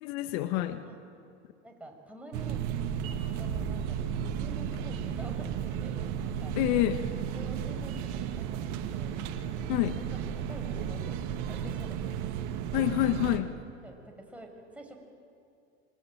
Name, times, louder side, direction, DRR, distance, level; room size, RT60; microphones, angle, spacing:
voice 1, 0.0-0.9 6.6-7.0 9.7-10.0 12.7-13.5, left 15 dB, 60° left, 9 dB, 1.5 m, -27 dB
voice 2, 1.6-2.6 3.4-6.6 7.3-9.2 9.8-9.9 10.3-12.1 13.8-15.0, right 1 dB, 5° right, 1 dB, 6.5 m, -48 dB
sound 1, 2.3-13.4, right 8 dB, 55° right, 1.9 m, -34 dB
27.0 x 23.5 x 9.1 m, 2.4 s
hypercardioid pair, 85°, 35 cm